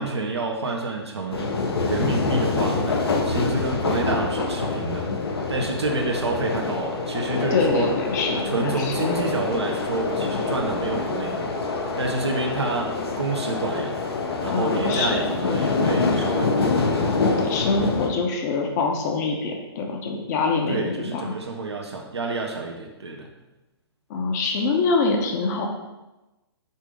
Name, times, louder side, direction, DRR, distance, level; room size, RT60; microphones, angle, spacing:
voice 1, 0.0-1.5 1.8-3.0 3.2-5.1 5.5-7.9 8.3-11.6 12.0-14.0 14.4-16.8 20.7-23.3, right 3 dB, 80° right, 1 dB, 1.1 m, -28 dB
sound 1, 1.3-18.1, left 3 dB, 65° left, 1.1 m, -25 dB
voice 2, 7.5-9.0 14.5-15.2 17.4-21.3 24.1-25.7, left 4 dB, 40° left, 2 dB, 1.0 m, -25 dB
5.7 x 3.7 x 5.1 m, 1.0 s
figure-of-eight pair, 130°, 14 cm